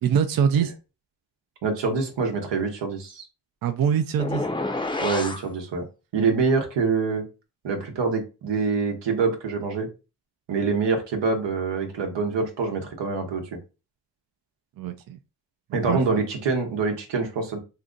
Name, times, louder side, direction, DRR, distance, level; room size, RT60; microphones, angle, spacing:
voice 1, 0.0-0.7 3.6-4.4 14.8-15.2 15.9-16.0, right 7 dB, 55° right, 0.5 m, -23 dB
voice 2, 1.6-3.2 5.0-5.8 6.1-7.2 7.6-9.9 10.5-13.4 15.7-17.6, right 4 dB, 90° right, 0.9 m, -25 dB
sound 1, 4.2-5.5, left 2 dB, 10° left, 0.5 m, -28 dB
2.7 x 2.6 x 3.7 m
cardioid pair, 60°, 42 cm